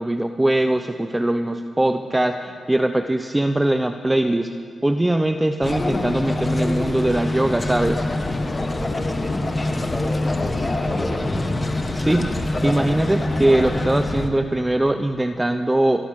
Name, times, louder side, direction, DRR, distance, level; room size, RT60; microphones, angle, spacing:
voice 1, 0.0-4.5 4.8-8.1 12.0-12.3 12.6-16.1, right 1 dB, 15° right, 7 dB, 0.7 m, -21 dB
sound 1, 5.6-14.3, left 2 dB, 30° left, 1.5 m, -24 dB
voice 2, 8.8-11.3, left 1 dB, 15° left, 1 dB, 2.6 m, -32 dB
24.5 x 13.5 x 3.7 m, 2.1 s
cardioid pair, 60°, 0 cm